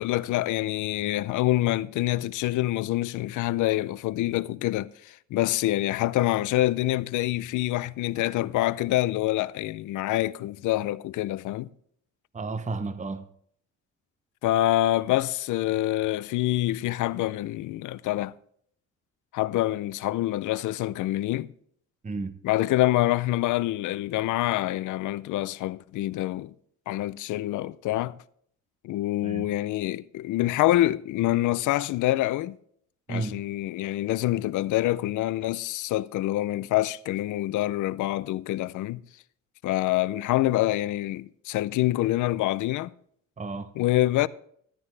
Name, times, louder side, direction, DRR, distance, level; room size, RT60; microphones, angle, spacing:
voice 1, 0.0-11.7 14.4-18.3 19.3-21.5 22.4-26.5 26.9-28.1 28.8-32.6 33.1-39.0 39.6-42.9 43.8-44.3, left 15 dB, 80° left, 0.6 m, -26 dB
voice 2, 12.3-13.2 22.0-22.4 29.2-29.5 33.1-33.4 43.4-43.7, right 3 dB, 25° right, 0.9 m, -32 dB
13.5 x 12.5 x 3.3 m
cardioid pair, 90°, 30 cm